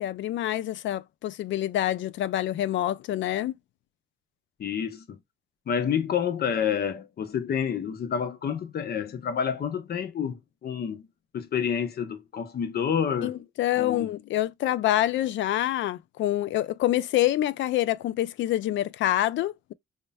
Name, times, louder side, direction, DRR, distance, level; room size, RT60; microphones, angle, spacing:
voice 1, 0.0-3.5 13.2-19.7, left 13 dB, 70° left, 0.4 m, -26 dB
voice 2, 4.6-5.2 5.7-11.1 11.3-13.4 13.7-14.1, left 7 dB, 50° left, 0.8 m, -29 dB
5.1 x 2.2 x 2.3 m
cardioid pair, 90°, 20 cm